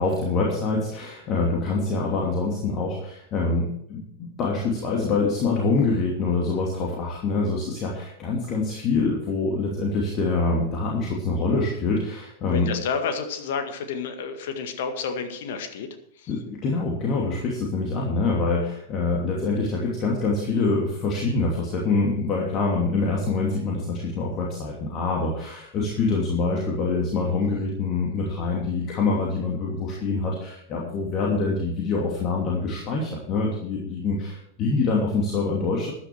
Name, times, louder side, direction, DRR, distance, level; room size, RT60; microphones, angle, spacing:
voice 1, 0.0-12.7 16.3-35.9, left 3 dB, 35° left, -2 dB, 2.8 m, -25 dB
voice 2, 12.5-15.9 16.1-16.4, left 5 dB, 55° left, 7 dB, 1.9 m, -30 dB
14.0 x 10.5 x 4.7 m, 0.71 s
figure-of-eight pair, 90°, 0 cm